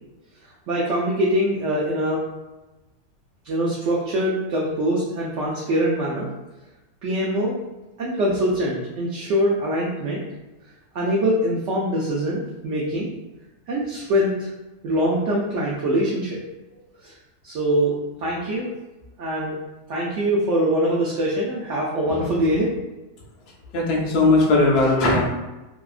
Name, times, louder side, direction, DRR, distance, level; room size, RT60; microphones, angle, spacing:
voice 1, 0.7-2.2 3.4-6.3 7.0-7.6 8.0-10.2 10.9-13.1 13.7-14.5 14.8-16.4 17.0-17.1 17.4-18.7 19.2-19.6 19.9-22.8, equal, 65° right, -4 dB, 0.8 m, -23 dB
voice 2, 23.7-25.3, left 2 dB, 65° left, -1 dB, 0.6 m, -18 dB
2.8 x 2.3 x 2.3 m, 1.1 s
omnidirectional pair, 1.6 m